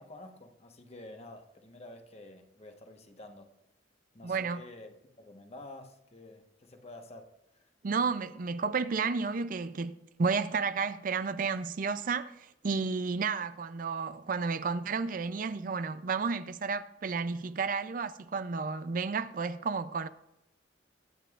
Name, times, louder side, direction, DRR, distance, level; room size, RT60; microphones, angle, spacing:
voice 1, 0.0-3.5 4.1-7.3, left 2 dB, 35° left, 1.2 m, -49 dB
voice 2, 4.2-4.6 7.8-20.1, right 5 dB, 50° right, 0.4 m, -32 dB
21.5 x 9.1 x 2.4 m
head